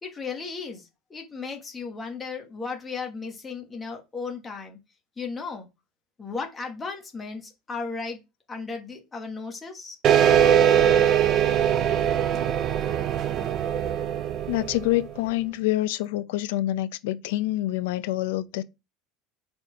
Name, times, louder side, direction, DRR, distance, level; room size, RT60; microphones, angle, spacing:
voice 1, 0.0-4.8 5.2-5.7 6.2-8.2 8.5-10.0, left 4 dB, 15° left, 1.4 m, -35 dB
sound 1, 10.0-15.1, right 9 dB, 35° right, 0.5 m, -21 dB
voice 2, 14.5-18.6, left 16 dB, 80° left, 0.6 m, -26 dB
4.4 x 4.3 x 5.0 m
cardioid pair, 160°, 0 cm